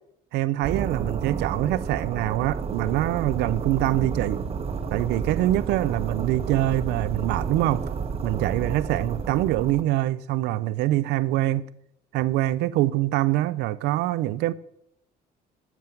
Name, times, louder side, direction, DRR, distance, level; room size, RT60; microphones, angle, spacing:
voice 1, 0.3-4.4 4.9-7.9 8.2-11.7 12.1-14.5, right 15 dB, 85° right, 0.5 m, -24 dB
sound 1, 0.6-9.8, right 6 dB, 35° right, 1.0 m, -31 dB
11.0 x 7.3 x 5.8 m
cardioid pair, 110°, 17 cm